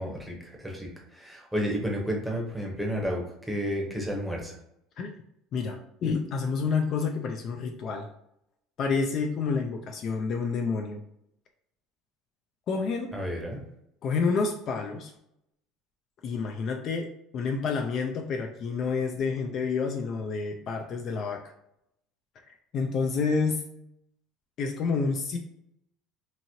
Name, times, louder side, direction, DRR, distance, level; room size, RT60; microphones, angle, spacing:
voice 1, 0.0-4.5 13.1-13.6, equal, ahead, -1 dB, 0.7 m, -31 dB
voice 2, 5.5-8.1 8.8-11.0 12.7-13.1 14.0-15.1 16.2-17.1 17.3-21.4 22.7-23.6 24.6-25.4, left 5 dB, 45° left, 3 dB, 0.3 m, -29 dB
2.9 x 2.7 x 2.7 m, 0.77 s
cardioid pair, 130°, 0 cm